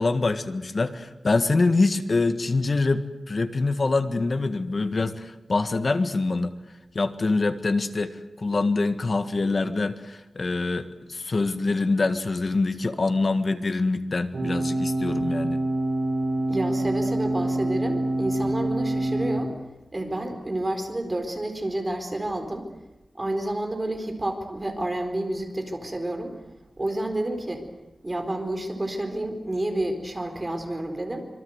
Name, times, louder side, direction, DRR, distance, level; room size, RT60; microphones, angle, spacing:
voice 1, 0.0-6.5 6.9-15.6 18.4-18.5, left 3 dB, 50° left, 9 dB, 1.7 m, -25 dB
sound 1, 14.3-19.4, right 1 dB, 65° right, 6.3 m, -26 dB
voice 2, 16.5-19.5 19.9-22.7 23.2-26.4 26.8-27.7 28.0-31.2, right 1 dB, 25° right, 5 dB, 4.4 m, -29 dB
26.5 x 23.5 x 8.1 m, 0.97 s
wide cardioid pair, 115°, 0 cm